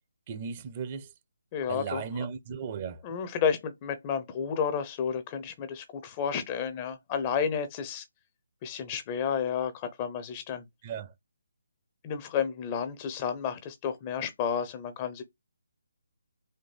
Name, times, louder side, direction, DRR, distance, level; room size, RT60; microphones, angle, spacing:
voice 1, 0.3-1.1 1.7-3.0 10.8-11.1, right 6 dB, 30° right, 0.6 m, -36 dB
voice 2, 1.5-2.0 3.0-8.0 8.6-10.7 12.0-15.2, left 7 dB, 25° left, 0.6 m, -31 dB
4.2 x 2.6 x 3.3 m
figure-of-eight pair, 145°, 0 cm